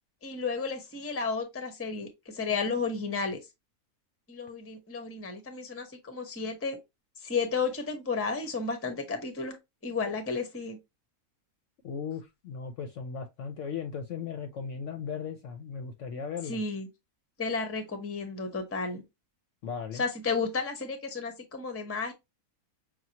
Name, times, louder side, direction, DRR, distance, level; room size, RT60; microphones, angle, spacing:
voice 1, 0.2-3.4 4.3-6.8 7.2-9.6 9.8-10.8 16.4-16.9 17.4-19.0 19.9-22.1, left 4 dB, 15° left, 0.6 m, -32 dB
voice 2, 11.8-16.6 19.6-20.0, left 6 dB, 65° left, 0.8 m, -37 dB
6.0 x 2.3 x 2.7 m
omnidirectional pair, 1.6 m